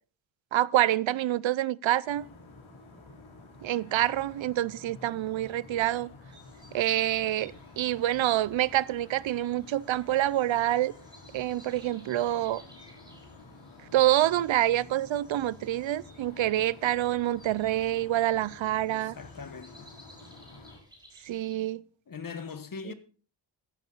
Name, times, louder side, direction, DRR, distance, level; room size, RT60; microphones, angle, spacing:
voice 1, 0.5-2.3 3.6-6.1 6.7-10.9 11.3-12.6 13.9-19.1 21.2-21.8 22.9-23.0, right 13 dB, 75° right, 0.6 m, -27 dB
sound 1, 2.0-20.8, left 3 dB, 90° left, 4.5 m, -51 dB
sound 2, 6.3-21.6, equal, 10° right, 4.2 m, -58 dB
voice 2, 18.9-19.9 22.1-22.9, left 5 dB, 45° left, 1.4 m, -41 dB
15.0 x 12.0 x 4.0 m
wide cardioid pair, 125°, 46 cm